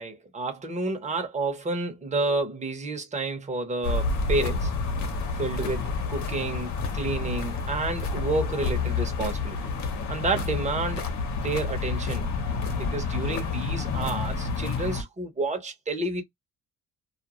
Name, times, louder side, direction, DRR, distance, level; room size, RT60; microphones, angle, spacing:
voice 1, 0.0-4.7 5.4-9.6 10.1-11.0 11.4-16.2, right 3 dB, 20° right, 1.0 m, -30 dB
sound 1, 3.8-15.0, left 4 dB, 60° left, 1.0 m, -29 dB
2.4 x 2.2 x 3.0 m
cardioid pair, 100°, 32 cm